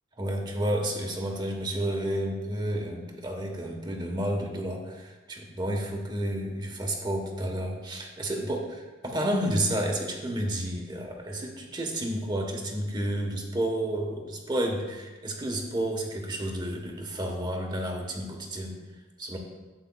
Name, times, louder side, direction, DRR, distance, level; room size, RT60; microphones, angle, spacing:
voice 1, 0.2-18.8 19.2-19.4, right 1 dB, 25° right, 1 dB, 1.1 m, -31 dB
12.0 x 8.2 x 2.3 m, 1.2 s
head